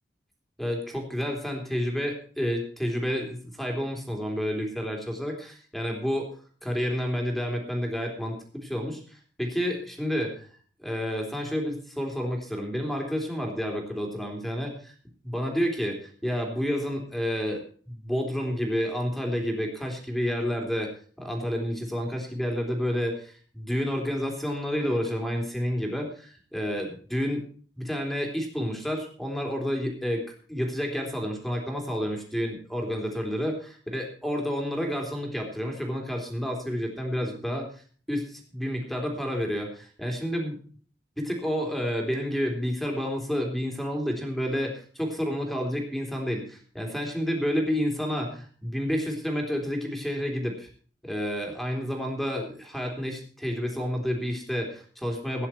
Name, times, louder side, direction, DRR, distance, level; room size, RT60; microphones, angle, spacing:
voice 1, 0.6-6.3 6.6-10.5 10.8-14.9 15.2-20.9 21.2-27.4 27.8-30.2 30.5-40.6 41.2-50.7 51.0-55.5, equal, ahead, 1 dB, 3.7 m, -30 dB
17.0 x 10.5 x 4.6 m, 0.43 s
head